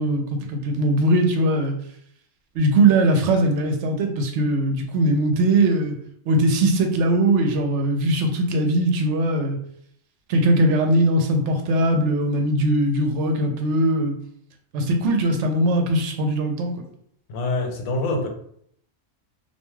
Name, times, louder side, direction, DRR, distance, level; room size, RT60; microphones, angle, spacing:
voice 1, 0.0-1.7 2.5-5.9 6.3-9.6 10.3-14.2 14.7-16.7, right 1 dB, 70° right, 4 dB, 0.9 m, -20 dB
voice 2, 17.3-18.3, left 2 dB, 85° left, 3 dB, 1.0 m, -25 dB
2.5 x 2.2 x 3.0 m, 0.66 s
omnidirectional pair, 1.3 m